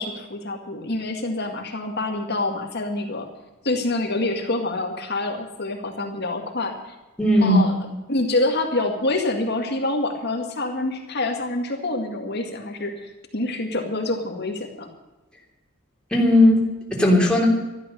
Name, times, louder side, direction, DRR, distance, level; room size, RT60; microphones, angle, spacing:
voice 1, 0.0-3.3 3.6-6.9 7.4-7.7 8.1-14.9, left 2 dB, 50° left, 2 dB, 2.1 m, -26 dB
voice 2, 7.2-7.6 16.1-17.5, left 1 dB, 5° left, -2 dB, 3.3 m, -17 dB
13.5 x 12.5 x 6.8 m, 1.1 s
head